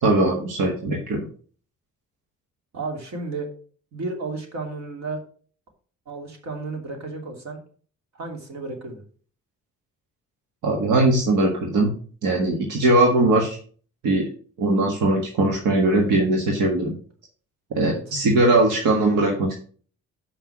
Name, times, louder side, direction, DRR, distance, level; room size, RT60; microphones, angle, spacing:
voice 1, 0.0-1.2 10.6-11.9 12.2-13.6 14.0-14.3 14.6-16.9 17.7-19.5, right 2 dB, 85° right, 1 dB, 1.6 m, -20 dB
voice 2, 2.7-3.5 3.9-5.2 6.1-7.6 8.1-9.0 17.8-18.1, right 3 dB, 65° right, 3 dB, 2.9 m, -33 dB
7.0 x 5.7 x 6.0 m, 0.43 s
cardioid pair, 90°, 30 cm